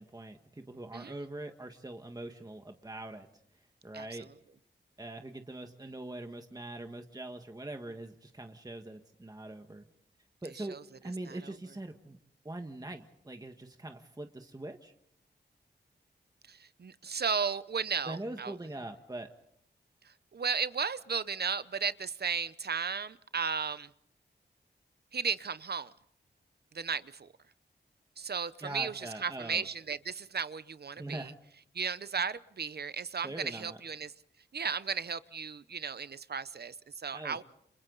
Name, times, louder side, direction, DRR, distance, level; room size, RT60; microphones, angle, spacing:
voice 1, 0.0-3.3 3.8-4.3 5.0-9.8 10.4-10.8 11.0-12.2 12.5-14.9 18.1-19.3 28.6-29.7 31.0-31.3 33.2-33.8 37.1-37.4, right 2 dB, 20° right, 5 dB, 1.6 m, -42 dB
voice 2, 16.5-18.5 20.0-23.9 25.1-25.9 26.7-27.3 28.2-31.3 31.7-34.1 34.5-37.4, right 6 dB, 60° right, 15 dB, 0.8 m, -35 dB
30.0 x 27.0 x 4.0 m, 0.71 s
wide cardioid pair, 70°, 19 cm